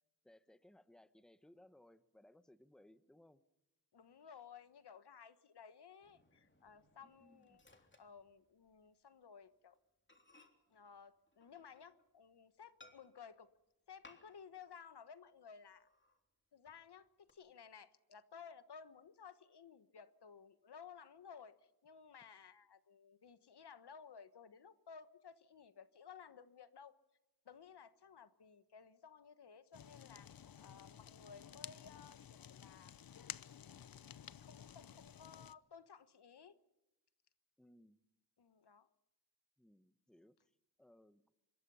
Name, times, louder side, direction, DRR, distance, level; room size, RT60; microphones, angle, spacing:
voice 1, 0.2-3.4 4.3-4.4 7.0-7.6 37.6-38.0 39.6-41.2, left 1 dB, ahead, 13 dB, 1.1 m, -65 dB
voice 2, 3.9-7.6 8.0-9.8 10.7-13.5 13.9-15.9 16.5-27.0 27.4-33.0 33.3-36.6 38.4-38.9, left 6 dB, 75° left, 13 dB, 1.3 m, -57 dB
Microwave oven, 6.0-8.9 9.2-9.4 9.7-9.8 10.1-12.2 12.8-13.4 14.0-14.6 14.9-15.0 15.5-16.2 16.7-17.3, left 2 dB, 30° left, 3.4 m, -66 dB
Fire, 29.7-35.5, left 9 dB, 60° left, 0.7 m, -53 dB
26.0 x 22.0 x 5.6 m, 0.93 s
wide cardioid pair, 70°, 40 cm